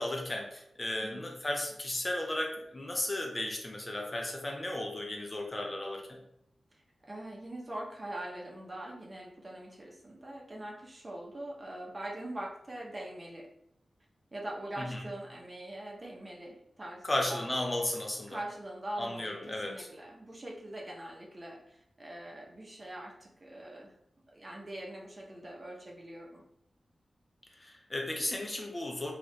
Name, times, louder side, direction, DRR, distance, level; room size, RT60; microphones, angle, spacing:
voice 1, 0.0-6.2 14.8-15.0 17.0-18.4 19.0-19.9 27.6-29.1, left 1 dB, 30° left, 1 dB, 0.4 m, -35 dB
voice 2, 6.7-13.5 14.3-17.5 18.3-24.0 24.3-26.4, right 1 dB, 30° right, -2 dB, 0.8 m, -43 dB
3.1 x 2.4 x 2.7 m, 0.76 s
wide cardioid pair, 75°, 0 cm